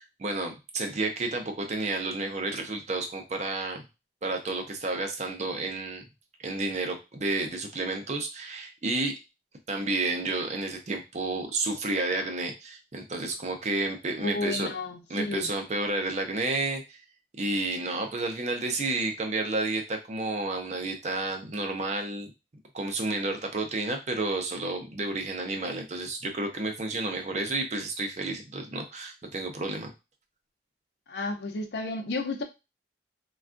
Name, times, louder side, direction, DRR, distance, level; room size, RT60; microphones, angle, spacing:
voice 1, 0.0-3.8 4.2-6.1 6.4-9.1 9.7-14.7 15.1-17.0 17.4-22.3 22.7-29.9, right 2 dB, 40° right, 4 dB, 0.5 m, -31 dB
voice 2, 14.2-15.5 31.1-32.4, left 2 dB, 75° left, 3 dB, 0.6 m, -32 dB
3.4 x 2.3 x 2.5 m, 0.26 s
head